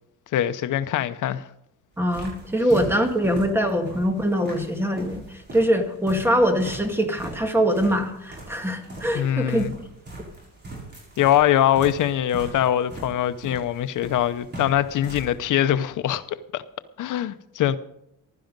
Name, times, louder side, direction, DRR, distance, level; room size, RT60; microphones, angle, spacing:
voice 1, 0.3-1.4 9.1-9.7 11.2-16.6 17.0-17.8, left 11 dB, 70° left, 0.7 m, -23 dB
sound 1, 1.9-15.3, right 1 dB, 30° right, 6.8 m, -40 dB
voice 2, 2.0-5.3 5.5-9.7, equal, 5° right, 1.9 m, -23 dB
15.5 x 12.0 x 5.2 m
cardioid pair, 175°, 32 cm